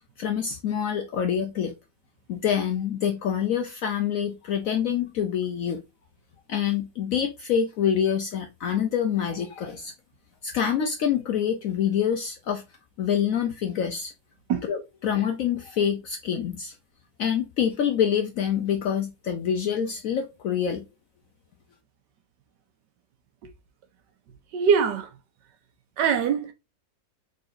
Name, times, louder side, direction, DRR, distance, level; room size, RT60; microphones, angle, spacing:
voice 1, 0.2-1.7 2.3-5.8 6.5-9.9 10.4-12.6 13.0-14.1 14.6-16.7 17.2-20.9, left 8 dB, 70° left, 0.8 m, -26 dB
voice 2, 24.5-25.1 26.0-26.5, right 6 dB, 75° right, 1.5 m, -22 dB
3.9 x 3.9 x 2.5 m
omnidirectional pair, 1.9 m